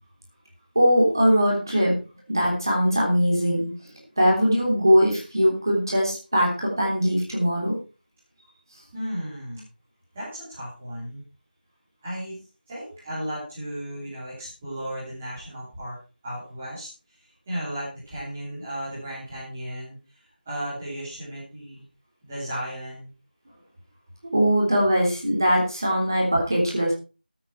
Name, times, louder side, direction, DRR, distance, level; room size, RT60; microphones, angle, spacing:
voice 1, 0.7-2.0 2.3-7.8 24.3-26.9, equal, 20° right, -2 dB, 3.3 m, -21 dB
voice 2, 8.9-9.6 10.1-11.2 12.0-16.0 16.2-21.8 22.2-23.1, equal, 5° right, -12 dB, 3.1 m, -35 dB
15.5 x 8.9 x 4.6 m, 0.33 s
figure-of-eight pair, 180°, 5 cm